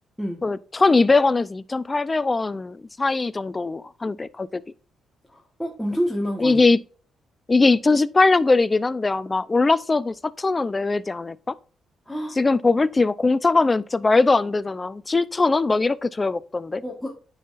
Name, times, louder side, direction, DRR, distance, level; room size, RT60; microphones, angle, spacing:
voice 1, 0.4-4.6 6.4-6.8 7.5-11.5 12.4-16.8, left 3 dB, 25° left, 0.4 m, -21 dB
voice 2, 5.3-6.6 12.1-12.4 16.8-17.2, equal, ahead, 1.3 m, -28 dB
9.2 x 5.7 x 2.5 m
cardioid pair, 90°, 0 cm